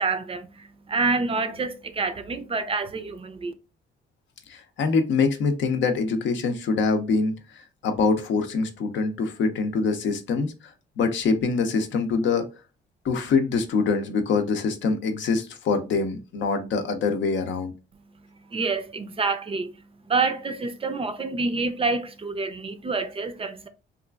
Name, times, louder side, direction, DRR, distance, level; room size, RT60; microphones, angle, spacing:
voice 1, 0.0-3.5 18.2-23.7, right 4 dB, 30° right, 0.4 m, -28 dB
voice 2, 4.5-7.3 7.8-10.5 11.0-12.5 13.0-17.7, left 4 dB, 70° left, 0.6 m, -24 dB
2.9 x 2.4 x 2.2 m
cardioid pair, 90°, 20 cm